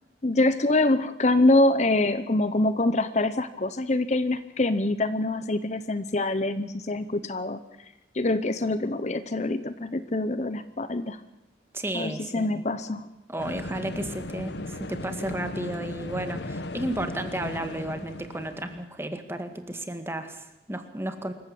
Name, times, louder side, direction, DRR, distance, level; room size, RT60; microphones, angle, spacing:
voice 1, 0.2-7.6 8.1-11.2 11.9-13.1, left 2 dB, 40° left, 12 dB, 0.8 m, -25 dB
voice 2, 11.7-12.6 13.3-21.3, right 1 dB, 15° right, 8 dB, 1.8 m, -33 dB
sound 1, 13.4-18.9, left 1 dB, 70° left, 1.3 m, -36 dB
26.0 x 14.5 x 8.5 m, 0.93 s
head